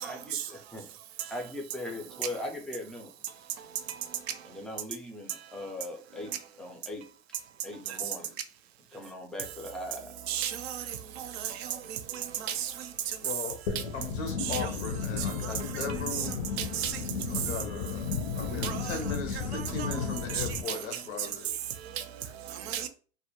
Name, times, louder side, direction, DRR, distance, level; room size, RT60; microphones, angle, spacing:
voice 1, 0.0-0.8 1.3-3.1 4.5-6.3 6.6-7.0 7.6-8.3 8.9-10.1, left 1 dB, ahead, 0.3 m, -39 dB
voice 2, 10.3-10.8 11.2-11.3 12.6-12.7 14.5-14.7 16.6-16.9 18.6-19.0 19.5-19.9 20.3-20.4 22.7-22.9, right 10 dB, 75° right, 0.5 m, -33 dB
voice 3, 13.2-13.6 13.9-16.5 17.3-21.5, left 4 dB, 90° left, 0.8 m, -38 dB
sound 1, 13.7-20.6, left 6 dB, 55° left, 0.5 m, -34 dB
2.3 x 2.1 x 2.9 m
hypercardioid pair, 105°, 32 cm